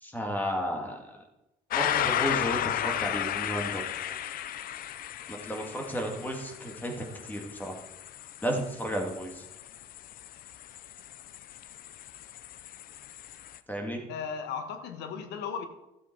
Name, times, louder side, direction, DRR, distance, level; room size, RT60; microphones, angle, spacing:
voice 1, 0.0-1.0 1.7-3.8 5.3-6.9 7.2-7.7 8.4-9.4 13.7-14.0, equal, 10° left, 1 dB, 2.3 m, -33 dB
sound 1, 1.7-13.6, left 11 dB, 60° left, 0.5 m, -35 dB
voice 2, 14.1-15.7, left 6 dB, 85° left, 7 dB, 1.4 m, -36 dB
13.0 x 7.8 x 4.7 m, 0.94 s
cardioid pair, 110°, 17 cm